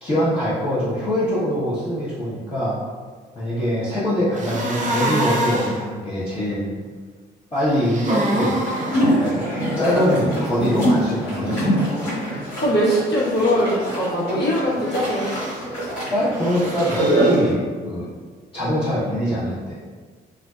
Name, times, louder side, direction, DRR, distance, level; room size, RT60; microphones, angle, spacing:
voice 1, 0.0-2.8 3.3-6.8 7.5-8.6 9.2-11.7 16.1-18.1 18.5-19.7, equal, 25° left, -13 dB, 1.0 m, -23 dB
sound 1, 4.3-5.8 7.6-9.0 14.8-15.6 16.3-17.4, right 1 dB, 35° right, 0.6 m, -26 dB
sound 2, 8.6-17.5, right 1 dB, 90° left, 1.2 m, -24 dB
voice 2, 10.6-12.3 12.6-15.3, equal, 50° left, -7 dB, 1.1 m, -23 dB
2.5 x 2.2 x 2.3 m, 1.5 s
hypercardioid pair, 50°, 21 cm